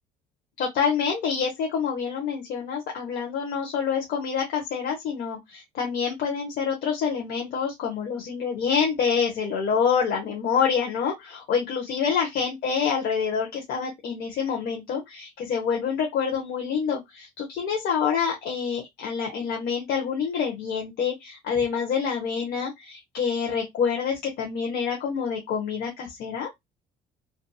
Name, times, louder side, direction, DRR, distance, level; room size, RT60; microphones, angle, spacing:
voice 1, 0.6-26.5, left 6 dB, 70° left, 0.8 m, -27 dB
2.7 x 2.5 x 2.2 m
cardioid pair, 110°, 17 cm